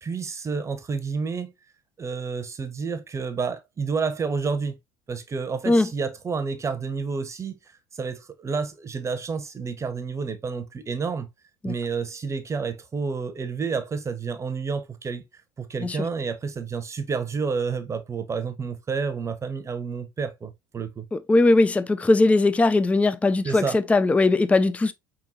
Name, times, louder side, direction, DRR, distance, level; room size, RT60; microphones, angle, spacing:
voice 1, 0.0-1.5 2.0-4.8 5.1-7.6 7.9-11.3 11.6-15.2 15.6-21.0 23.4-23.8, right 5 dB, 25° right, 0.8 m, -30 dB
voice 2, 21.1-24.9, left 2 dB, 10° left, 0.4 m, -20 dB
4.4 x 3.8 x 2.7 m
figure-of-eight pair, 65°, 11 cm